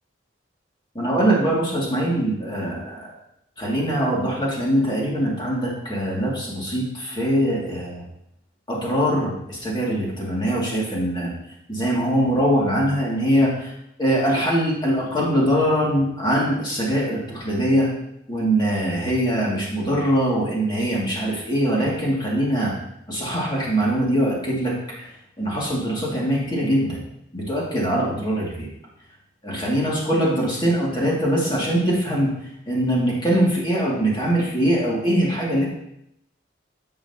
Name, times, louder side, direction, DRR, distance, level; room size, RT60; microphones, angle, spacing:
voice 1, 0.9-3.1 3.6-8.0 8.7-11.3 11.7-13.7 14.0-17.9 18.3-22.7 23.1-25.1 25.4-27.0 27.3-28.7 29.4-32.3 32.7-35.7, equal, 25° left, -5 dB, 2.3 m, -22 dB
10.0 x 7.0 x 2.8 m, 0.80 s
head